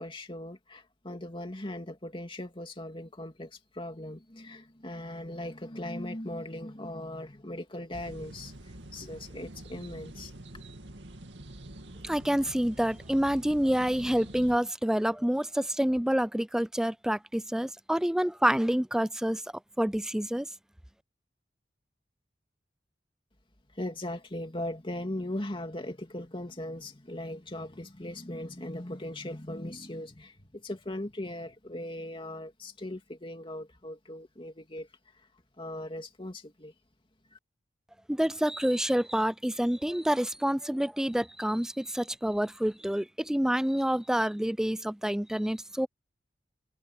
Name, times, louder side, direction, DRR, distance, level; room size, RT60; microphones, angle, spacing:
voice 1, 0.0-3.5 3.7-8.5 8.9-10.3 23.8-34.9 35.6-36.7, left 1 dB, 30° left, 2.7 m, -39 dB
sound 1, 7.9-14.6, right 1 dB, 80° right, 2.4 m, -46 dB
voice 2, 12.0-19.4 19.8-20.5 38.1-45.9, equal, 5° right, 0.3 m, -28 dB
head